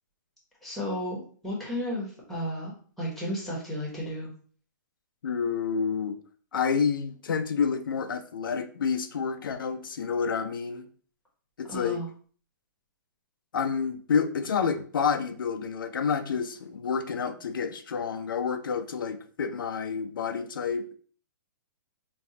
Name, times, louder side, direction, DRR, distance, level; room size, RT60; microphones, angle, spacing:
voice 1, 0.6-4.3 11.7-12.1, equal, ahead, -3 dB, 1.1 m, -33 dB
voice 2, 5.2-6.2 6.5-10.9 11.6-12.0 13.5-21.0, left 6 dB, 85° left, 7 dB, 0.5 m, -29 dB
5.2 x 2.4 x 2.7 m, 0.44 s
hypercardioid pair, 160°, 11 cm